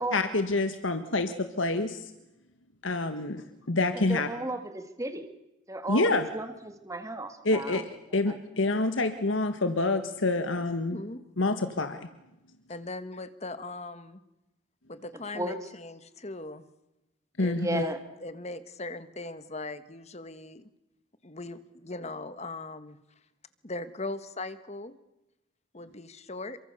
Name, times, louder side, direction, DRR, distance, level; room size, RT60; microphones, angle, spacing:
voice 1, 0.1-2.1 2.8-4.3 5.9-6.3 7.5-7.8 8.1-11.0 11.4-12.1 17.4-17.8, left 2 dB, 90° left, 8 dB, 1.6 m, -27 dB
voice 2, 4.1-5.3 5.7-7.8 8.3-8.4 15.3-15.6 17.6-18.0, right 1 dB, 15° right, 8 dB, 2.1 m, -34 dB
voice 3, 10.9-11.2 12.7-14.2 14.9-16.6 17.4-20.7 21.2-23.0 23.6-24.9 25.7-26.6, left 2 dB, 35° left, 12 dB, 1.5 m, -39 dB
28.5 x 24.5 x 6.9 m, 0.93 s
head